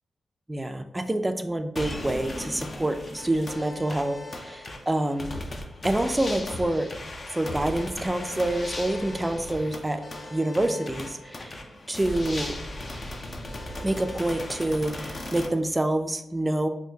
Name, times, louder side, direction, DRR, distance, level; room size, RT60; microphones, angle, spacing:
voice 1, 0.5-5.4 5.8-6.9 7.3-10.0 10.3-11.6 11.9-12.6 13.8-16.7, right 1 dB, 15° right, 7 dB, 0.3 m, -27 dB
sound 1, 1.8-15.5, left 1 dB, 40° left, 0.5 m, -37 dB
3.6 x 2.6 x 2.7 m, 0.83 s
cardioid pair, 70°, 0 cm